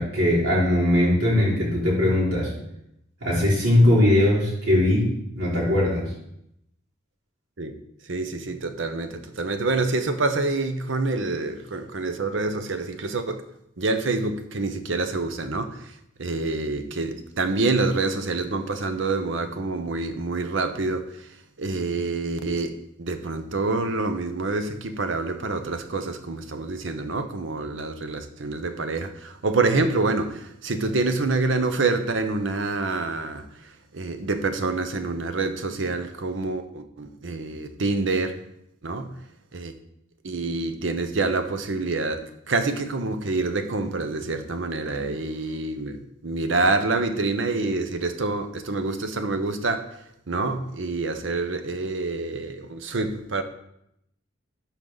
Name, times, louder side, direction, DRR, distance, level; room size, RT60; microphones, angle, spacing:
voice 1, 0.0-2.5 3.2-5.1 5.3-6.0, left 1 dB, 85° right, 3.4 m, -20 dB
voice 2, 8.1-13.4 13.8-15.9 16.2-21.3 21.6-33.5 33.9-38.4 38.8-39.1 39.5-39.7 40.2-49.9 50.3-53.4, right 3 dB, 65° right, 0.8 m, -27 dB
12.0 x 4.6 x 3.9 m
head